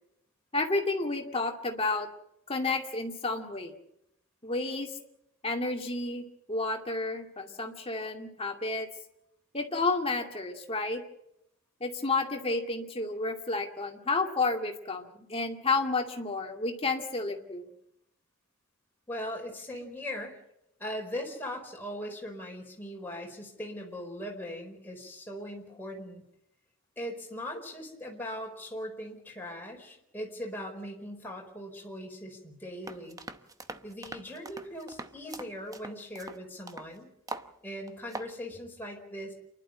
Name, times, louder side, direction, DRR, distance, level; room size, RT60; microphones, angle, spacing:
voice 1, 0.5-2.1 2.5-3.7 4.4-5.0 5.4-8.9 9.5-11.0 11.8-17.7, left 3 dB, 25° left, 2 dB, 2.4 m, -31 dB
voice 2, 19.1-20.4 20.8-26.2 27.0-33.2 33.8-37.1 37.6-39.3, equal, 10° left, -1 dB, 4.7 m, -40 dB
sound 1, 32.8-36.9 37.3-37.5 37.9-38.3, right 2 dB, 15° right, 0.8 m, -42 dB
29.0 x 11.5 x 8.9 m, 0.80 s
head